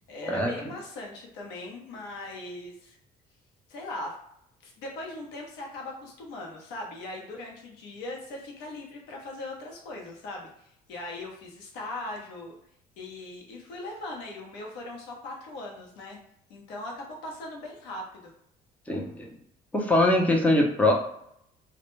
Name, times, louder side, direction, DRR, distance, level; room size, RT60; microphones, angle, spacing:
voice 1, 0.1-3.0 3.7-4.2 4.6-12.6 13.0-16.2 16.5-18.3, left 2 dB, 85° left, -1 dB, 0.7 m, -39 dB
voice 2, 18.9-19.3 19.7-20.9, left 1 dB, 10° left, 0 dB, 0.5 m, -22 dB
2.1 x 2.1 x 3.0 m, 0.73 s
cardioid pair, 110°, 17 cm